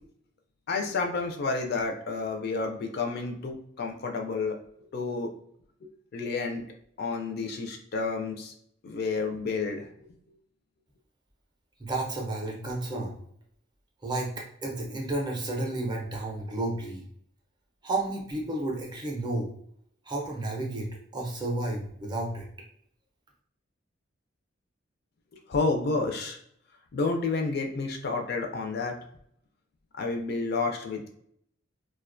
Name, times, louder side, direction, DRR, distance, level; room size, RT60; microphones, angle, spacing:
voice 1, 0.7-4.6 4.9-5.3 6.1-6.6 7.0-8.5 8.8-9.9 25.5-26.4 26.9-29.0 30.0-31.1, left 3 dB, 50° left, 3 dB, 0.3 m, -30 dB
voice 2, 11.8-13.2 14.0-17.0 17.8-19.5 20.1-22.5, right 2 dB, 20° right, 0 dB, 0.4 m, -32 dB
2.3 x 2.2 x 2.4 m, 0.67 s
head